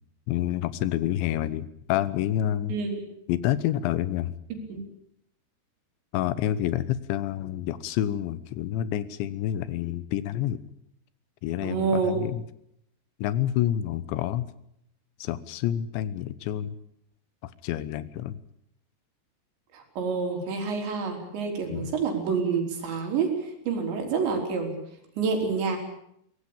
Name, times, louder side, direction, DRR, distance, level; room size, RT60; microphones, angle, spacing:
voice 1, 0.3-2.8 3.3-4.3 6.1-10.6 11.4-12.4 13.2-14.5 15.2-16.7 17.4-18.4 21.7-21.9, left 12 dB, 90° left, 16 dB, 3.4 m, -28 dB
voice 2, 2.7-3.0 4.7-4.8 11.6-12.2 19.7-24.7 25.2-25.8, right 5 dB, 80° right, 3 dB, 6.0 m, -28 dB
23.0 x 18.0 x 8.7 m, 0.73 s
omnidirectional pair, 5.1 m